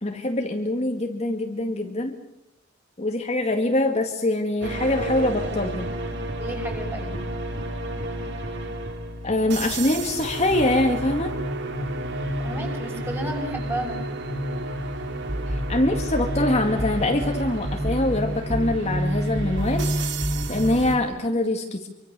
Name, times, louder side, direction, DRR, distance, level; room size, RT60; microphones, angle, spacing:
voice 1, 0.0-2.1 3.0-5.9 9.2-11.3 15.5-20.2 20.5-21.9, left 1 dB, 35° left, 3 dB, 2.1 m, -24 dB
sound 1, 4.6-21.0, right 1 dB, 60° right, 2.8 m, -29 dB
voice 2, 6.4-7.2 12.4-14.0, right 1 dB, 10° right, 2 dB, 6.7 m, -32 dB
26.5 x 25.0 x 6.9 m, 0.87 s
head